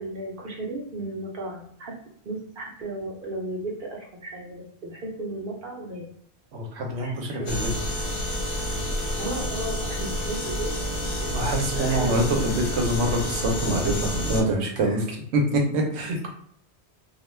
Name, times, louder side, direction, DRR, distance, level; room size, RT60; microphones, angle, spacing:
voice 1, 0.0-2.0 2.2-6.0 7.0-7.6 9.2-12.4 14.8-15.0, right 2 dB, 55° right, -1 dB, 0.8 m, -35 dB
voice 2, 6.5-7.7 11.3-16.3, right 1 dB, 85° right, 1 dB, 0.9 m, -25 dB
sound 1, 7.5-14.4, equal, 60° left, 0.9 m, -29 dB
2.4 x 2.2 x 3.1 m, 0.66 s
omnidirectional pair, 1.1 m